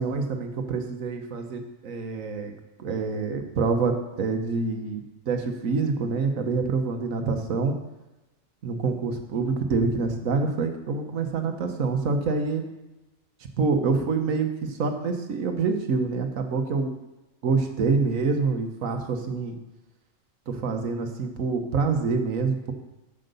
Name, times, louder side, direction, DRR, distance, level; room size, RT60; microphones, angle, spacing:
voice 1, 0.0-2.5 2.8-7.7 8.6-12.6 13.6-16.9 17.4-19.5 20.5-22.7, right 4 dB, 80° right, 6 dB, 1.5 m, -26 dB
7.8 x 6.6 x 6.8 m, 1.0 s
omnidirectional pair, 1.4 m